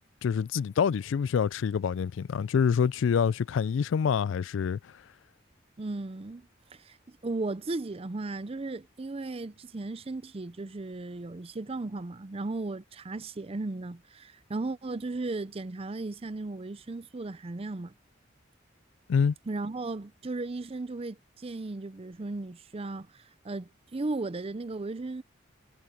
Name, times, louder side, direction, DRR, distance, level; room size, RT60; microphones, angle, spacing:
voice 1, 0.2-4.8 19.1-19.3, left 6 dB, 70° left, 0.3 m, -26 dB
voice 2, 5.8-17.9 19.5-25.2, right 2 dB, 30° right, 0.5 m, -36 dB
head